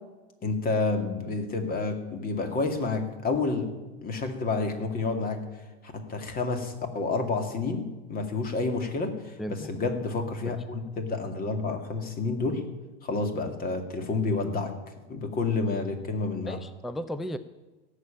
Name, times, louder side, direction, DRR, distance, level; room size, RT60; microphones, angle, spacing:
voice 1, 0.4-3.7 4.0-5.4 5.9-12.6 13.0-14.7 15.1-16.6, left 3 dB, 25° left, 6 dB, 2.4 m, -29 dB
voice 2, 9.4-9.7 10.5-10.6 16.5-17.4, equal, ahead, 13 dB, 0.4 m, -35 dB
17.0 x 7.4 x 9.0 m, 1.2 s
hypercardioid pair, 125°, 32 cm